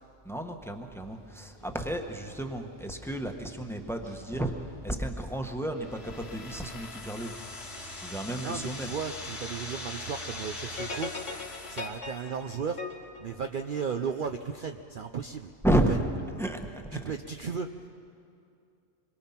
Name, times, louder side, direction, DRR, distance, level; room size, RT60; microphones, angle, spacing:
voice 1, 0.2-4.5 4.8-7.3 8.0-8.9 15.6-16.1 16.4-17.1, right 1 dB, ahead, 4 dB, 1.2 m, -31 dB
sound 1, 1.0-8.1, left 1 dB, 80° right, 6.1 m, -53 dB
sound 2, 5.8-11.9, left 2 dB, 55° left, 2.2 m, -41 dB
voice 2, 8.4-11.1 11.7-12.8 13.2-15.5 15.9-16.0 16.9-17.7, right 6 dB, 50° right, 6 dB, 0.7 m, -35 dB
sound 3, 10.8-14.2, left 4 dB, 75° left, 2.2 m, -39 dB
26.5 x 22.0 x 5.8 m, 2.5 s
omnidirectional pair, 1.3 m